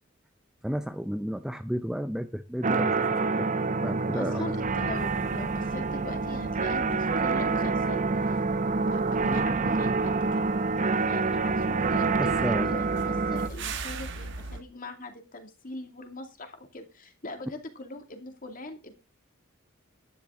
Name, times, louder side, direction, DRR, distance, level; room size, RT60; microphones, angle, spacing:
voice 1, 0.6-3.5 3.8-4.4 12.2-12.8, equal, 5° right, 0.5 m, -32 dB
sound 1, 2.6-13.5, right 4 dB, 35° right, 0.7 m, -27 dB
voice 2, 4.1-8.4 8.9-10.5 11.0-18.9, left 2 dB, 40° left, 2.3 m, -41 dB
sound 2, 4.8-14.6, right 3 dB, 60° right, 1.7 m, -42 dB
12.0 x 10.0 x 3.7 m
head